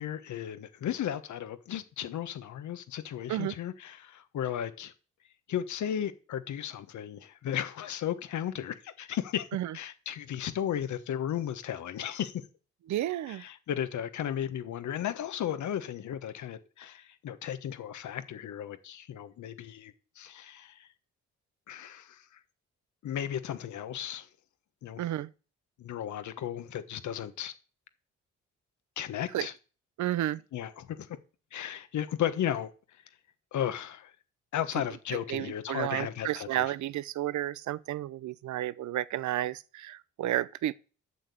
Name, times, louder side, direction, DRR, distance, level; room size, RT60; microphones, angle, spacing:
voice 1, 0.0-4.9 5.5-9.5 9.7-12.3 13.3-20.9 21.7-22.2 23.0-24.3 24.8-25.0 25.8-27.5 29.0-29.5 30.5-31.1 31.5-32.7 33.5-34.1 34.5-36.6, left 10 dB, 70° left, 1.3 m, -35 dB
voice 2, 12.9-13.4 25.0-25.3 29.3-29.5 30.0-30.4 35.3-40.7, right 13 dB, 70° right, 0.7 m, -32 dB
8.3 x 6.7 x 8.5 m
cardioid pair, 70°, 30 cm